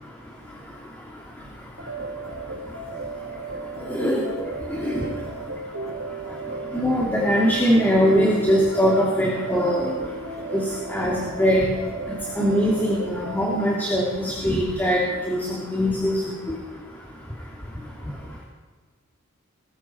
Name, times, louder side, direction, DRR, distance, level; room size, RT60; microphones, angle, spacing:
sound 1, 1.8-13.7, right 2 dB, 70° right, 3.4 m, -35 dB
voice 1, 3.9-4.2 4.8-5.0 6.7-9.9 10.5-10.6 10.9-11.1 11.4-11.7 12.4-16.2, equal, 10° left, -4 dB, 2.6 m, -21 dB
20.5 x 15.0 x 4.4 m, 1.4 s
head